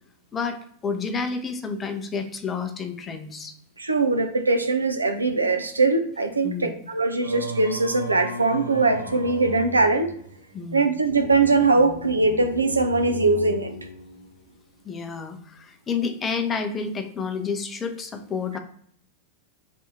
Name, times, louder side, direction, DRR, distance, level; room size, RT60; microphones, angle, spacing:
voice 1, 0.3-3.5 6.4-6.7 10.5-10.9 14.8-18.6, left 5 dB, 20° left, 8 dB, 0.5 m, -30 dB
voice 2, 3.8-10.1 10.7-13.7, right 3 dB, 80° right, 7 dB, 0.4 m, -21 dB
Singing, 7.2-14.6, right 1 dB, 90° left, 0.7 m, -37 dB
2.7 x 2.5 x 3.6 m, 0.63 s
figure-of-eight pair, 90°, 0 cm